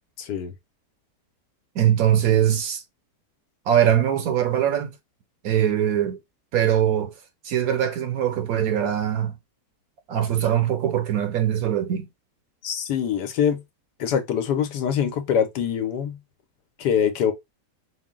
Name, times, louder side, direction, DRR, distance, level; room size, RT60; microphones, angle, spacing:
voice 1, 0.2-0.5 12.6-13.6 14.0-16.2 16.8-17.3, left 8 dB, 80° left, 1.3 m, -24 dB
voice 2, 1.7-2.8 3.7-4.9 5.4-6.2 6.5-7.1 7.4-9.4 10.1-12.1, right 10 dB, 65° right, 1.0 m, -22 dB
4.4 x 2.0 x 3.7 m
omnidirectional pair, 1.8 m